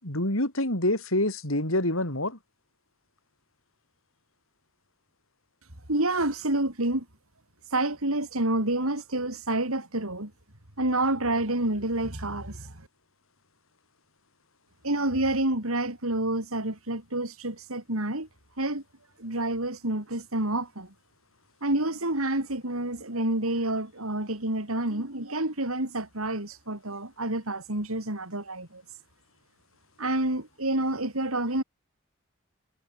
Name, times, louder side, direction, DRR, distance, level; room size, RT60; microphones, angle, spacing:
voice 1, 0.0-2.4, left 1 dB, 65° left, 7.4 m, -26 dB
voice 2, 5.9-7.1 7.7-10.3 10.8-12.8 14.8-18.3 18.6-18.8 19.2-20.9 21.6-28.8 30.0-31.6, right 2 dB, 75° right, 5.1 m, -28 dB
head